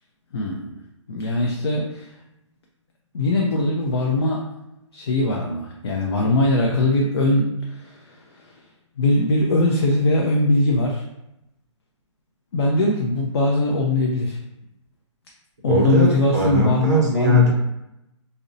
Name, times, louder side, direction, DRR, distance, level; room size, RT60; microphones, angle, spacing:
voice 1, 0.3-0.7 1.1-2.1 3.1-4.4 4.9-8.6 9.0-11.0 12.5-14.4 15.6-17.4, left 2 dB, 55° left, -1 dB, 0.4 m, -21 dB
voice 2, 15.6-17.5, left 1 dB, 35° right, -3 dB, 0.5 m, -19 dB
2.5 x 2.0 x 2.5 m, 0.88 s
hypercardioid pair, 175°, 16 cm